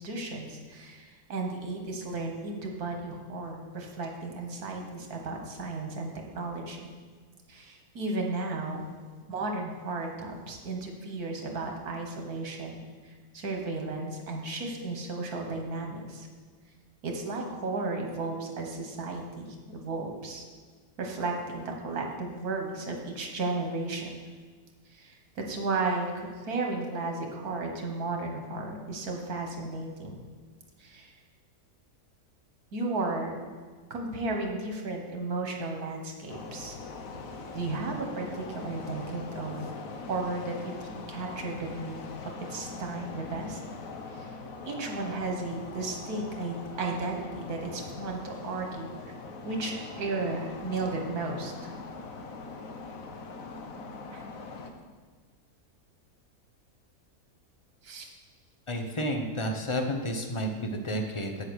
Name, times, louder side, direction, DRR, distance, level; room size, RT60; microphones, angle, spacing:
voice 1, 0.0-6.8 7.5-8.8 9.3-16.3 17.0-20.4 21.0-24.1 24.9-30.2 30.8-31.1 32.7-33.3 33.9-36.8 37.5-39.7 40.1-40.5 40.8-42.0 42.5-43.6 44.1-44.3 44.6-48.9 49.5-51.5 54.1-54.2 57.8-58.1, right 3 dB, 75° right, 2 dB, 1.9 m, -34 dB
sound 1, 36.3-54.7, left 4 dB, 65° left, 1.3 m, -42 dB
voice 2, 58.7-61.4, equal, 25° left, 4 dB, 0.8 m, -31 dB
8.2 x 8.0 x 6.3 m, 1.5 s
omnidirectional pair, 1.6 m